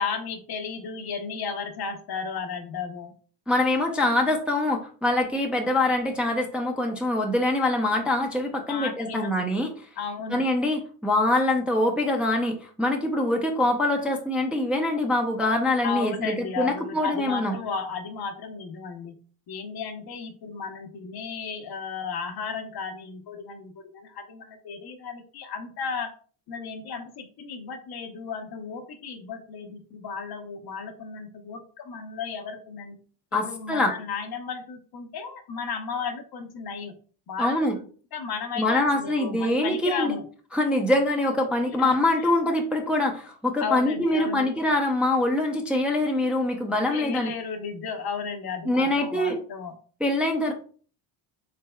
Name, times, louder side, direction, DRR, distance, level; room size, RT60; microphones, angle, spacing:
voice 1, 0.0-3.1 8.7-9.4 10.0-10.4 15.8-19.1 19.5-26.1 26.5-32.9 33.3-36.9 37.3-37.8 38.1-40.2 41.8-42.3 43.6-44.5 46.9-49.7, left 5 dB, 50° left, 6 dB, 0.8 m, -34 dB
voice 2, 3.5-9.7 10.3-17.6 33.3-33.9 37.4-37.8 38.6-40.2 40.5-47.3 48.7-49.4 50.0-50.5, left 1 dB, ahead, 1 dB, 0.5 m, -24 dB
3.4 x 3.3 x 2.2 m, 0.42 s
supercardioid pair, 85°, 49 cm